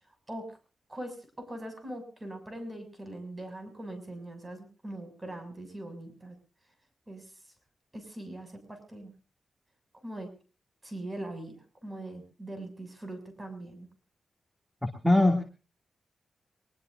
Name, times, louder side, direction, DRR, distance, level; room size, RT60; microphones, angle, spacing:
voice 1, 0.3-0.6 0.9-6.4 7.1-7.5 7.9-9.1 10.0-10.3 10.8-13.9, right 1 dB, 25° right, 8 dB, 6.9 m, -41 dB
voice 2, 14.8-15.4, left 1 dB, ahead, 4 dB, 2.5 m, -22 dB
23.5 x 20.5 x 2.7 m, 0.34 s
cardioid pair, 85°, 0 cm